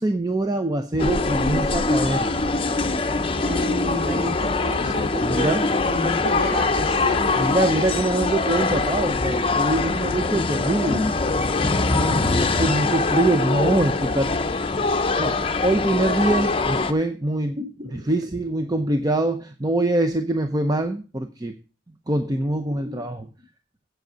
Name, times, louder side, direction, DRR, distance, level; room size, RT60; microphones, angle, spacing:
voice 1, 0.0-2.3 5.2-5.7 7.4-11.0 11.8-14.4 15.2-17.6 17.9-21.5 22.1-23.3, right 1 dB, 20° right, 6 dB, 0.7 m, -24 dB
sound 1, 1.0-16.9, left 3 dB, 30° left, 0.7 m, -23 dB
voice 2, 3.4-7.5 10.9-11.1 17.6-18.0 22.8-23.0, left 1 dB, 50° right, 2 dB, 3.6 m, -30 dB
8.0 x 7.9 x 6.1 m, 0.34 s
head